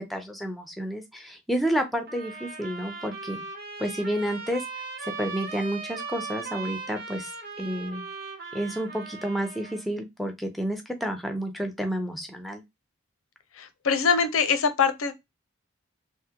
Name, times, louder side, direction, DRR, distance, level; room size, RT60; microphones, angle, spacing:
voice 1, 0.0-3.4 3.8-4.6 5.0-7.3 7.6-8.0 8.5-12.6, equal, ahead, 0.4 m, -30 dB
sound 1, 2.1-9.8, right 4 dB, 45° right, 0.9 m, -38 dB
voice 2, 13.6-15.1, left 6 dB, 90° left, 0.6 m, -23 dB
3.4 x 2.1 x 2.8 m
head